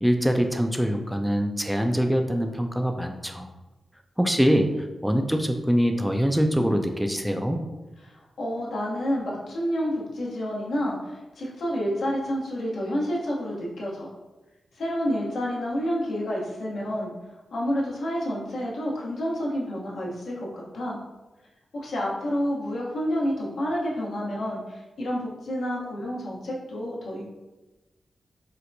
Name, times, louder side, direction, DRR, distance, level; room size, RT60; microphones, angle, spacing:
voice 1, 0.0-3.5 4.2-4.7 5.0-7.6, equal, 5° right, 5 dB, 0.4 m, -23 dB
voice 2, 8.0-14.1 14.7-17.1 17.5-21.0 21.7-27.2, equal, 80° left, -4 dB, 0.8 m, -29 dB
4.2 x 2.1 x 2.6 m, 1.1 s
cardioid pair, 45°, 0 cm